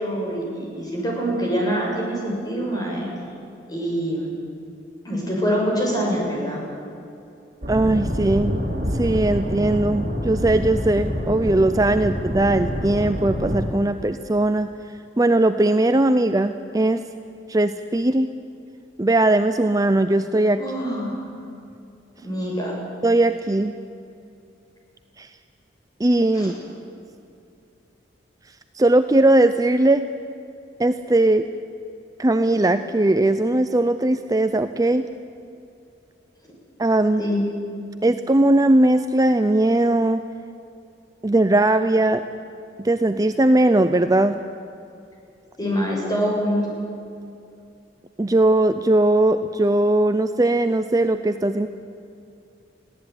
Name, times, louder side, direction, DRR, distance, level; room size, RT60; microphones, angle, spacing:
voice 1, 0.0-3.1 3.7-4.3 5.0-6.6 20.6-21.3 22.2-22.8 26.3-26.5 37.2-37.4 45.6-46.7, equal, 20° left, -2 dB, 6.9 m, -25 dB
sound 1, 7.6-13.6, equal, 45° right, 5.2 m, -27 dB
voice 2, 7.7-8.6 8.9-17.0 17.5-18.3 19.0-20.6 23.0-23.7 25.2-25.3 26.0-26.5 28.7-30.1 30.8-31.5 32.2-35.0 36.8-37.2 38.0-40.2 41.2-42.2 42.8-44.3 48.2-51.7, right 1 dB, 20° right, 9 dB, 0.5 m, -19 dB
22.0 x 16.5 x 9.5 m, 2.6 s
head